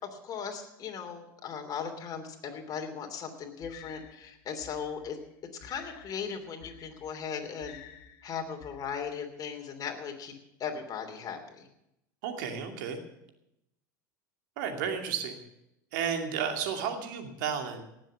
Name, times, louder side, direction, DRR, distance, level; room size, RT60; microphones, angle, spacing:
voice 1, 0.0-5.2 5.6-7.8 8.2-10.3 10.6-11.7, left 6 dB, 35° left, 4 dB, 2.9 m, -38 dB
sound 1, 3.6-9.0, left 8 dB, 55° left, 1.8 m, -52 dB
voice 2, 12.2-13.0 14.6-15.4 15.9-17.8, right 7 dB, 70° right, 4 dB, 2.5 m, -32 dB
18.5 x 7.7 x 7.5 m, 0.83 s
hypercardioid pair, 90°, 11 cm